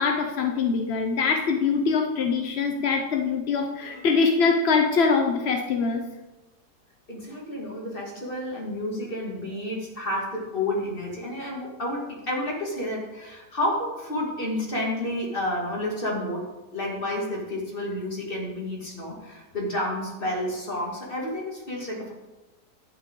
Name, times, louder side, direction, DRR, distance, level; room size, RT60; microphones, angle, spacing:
voice 1, 0.0-6.0, left 5 dB, 55° left, 3 dB, 0.7 m, -23 dB
voice 2, 7.1-22.1, left 1 dB, 30° left, -2 dB, 2.6 m, -30 dB
11.0 x 9.3 x 3.8 m, 1.1 s
omnidirectional pair, 1.9 m